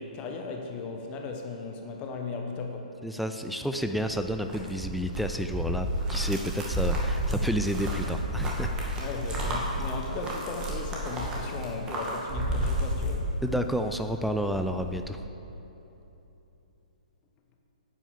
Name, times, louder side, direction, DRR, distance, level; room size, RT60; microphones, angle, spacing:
voice 1, 0.0-2.9 9.0-13.3, left 4 dB, 25° left, 2 dB, 1.2 m, -36 dB
voice 2, 3.0-9.0 13.4-15.3, equal, ahead, 6 dB, 0.4 m, -30 dB
sound 1, 3.8-13.7 14.1-15.0, right 1 dB, 20° right, 2.3 m, -31 dB
11.0 x 9.0 x 6.9 m, 3.0 s
figure-of-eight pair, 120°, 4 cm